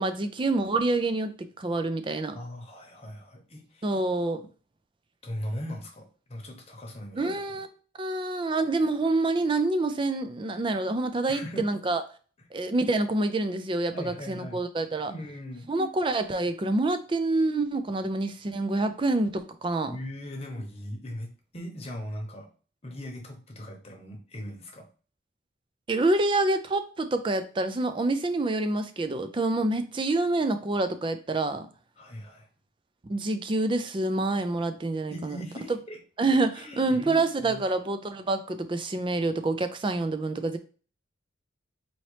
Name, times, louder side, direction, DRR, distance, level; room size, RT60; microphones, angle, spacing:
voice 1, 0.0-2.4 3.8-4.5 7.2-7.7 8.0-12.0 12.5-15.1 15.7-20.0 25.9-31.7 33.1-35.4 36.2-40.6, right 2 dB, 25° right, 0.4 m, -27 dB
voice 2, 2.3-3.9 5.2-7.4 11.3-11.7 13.9-14.6 15.1-15.7 19.9-22.5 22.8-24.8 32.0-32.5 35.1-36.0 36.6-37.7, equal, 30° left, 0.9 m, -39 dB
4.1 x 2.9 x 3.2 m
head